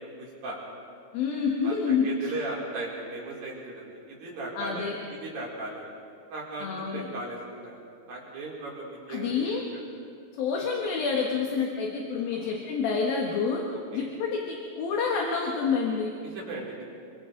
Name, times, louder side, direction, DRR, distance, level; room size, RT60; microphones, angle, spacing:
voice 1, 0.2-0.6 1.6-4.9 5.2-5.9 6.3-7.8 8.1-9.6 12.3-12.5 13.7-14.1 16.2-16.8, right 2 dB, 65° right, -5 dB, 5.8 m, -37 dB
voice 2, 1.1-2.3 4.5-4.9 6.6-7.0 9.1-9.6 10.4-13.6 13.9-16.1, left 5 dB, 70° left, -1 dB, 3.3 m, -28 dB
28.0 x 23.5 x 3.9 m, 2.3 s
omnidirectional pair, 4.5 m